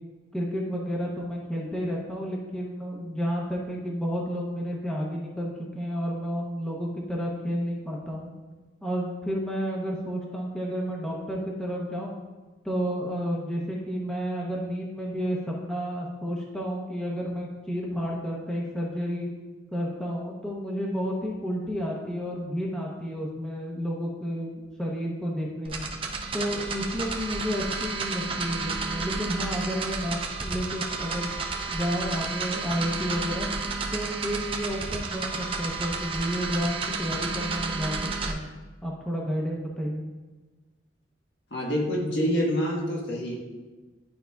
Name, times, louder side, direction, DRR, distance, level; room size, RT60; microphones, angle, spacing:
voice 1, 0.3-8.3 8.8-12.2 12.6-19.3 19.7-25.8 26.3-31.3 31.7-33.5 33.9-38.5 38.8-40.0, equal, 5° left, -3 dB, 0.8 m, -31 dB
sound 1, 25.6-38.3, right 4 dB, 30° right, 0.6 m, -31 dB
voice 2, 41.5-43.4, equal, 65° left, -2 dB, 1.4 m, -26 dB
11.5 x 5.0 x 2.3 m, 1.3 s
head